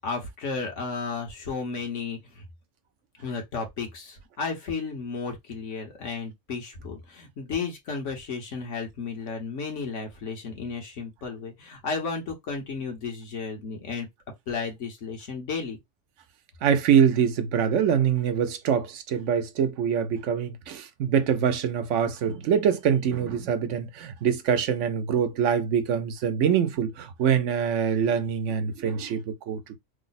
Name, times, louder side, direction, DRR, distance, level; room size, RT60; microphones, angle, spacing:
voice 1, 0.0-2.4 3.2-14.1 14.5-15.8, left 4 dB, 80° left, 1.4 m, -33 dB
voice 2, 16.6-29.8, right 8 dB, 85° right, 1.0 m, -24 dB
3.3 x 2.0 x 4.0 m
omnidirectional pair, 1.2 m